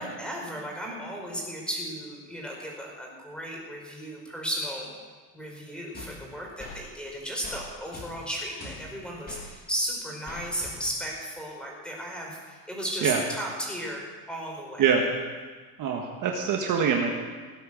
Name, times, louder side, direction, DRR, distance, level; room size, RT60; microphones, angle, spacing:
voice 1, 0.0-4.9 5.3-14.9, equal, ahead, -2 dB, 4.8 m, -35 dB
sound 1, 5.9-6.8 7.4-7.6 7.9-9.5 10.3-11.1, left 2 dB, 20° left, 3.1 m, -43 dB
voice 2, 15.8-17.1, right 7 dB, 45° right, 1 dB, 1.7 m, -24 dB
17.5 x 9.3 x 7.6 m, 1.4 s
cardioid pair, 145°, 44 cm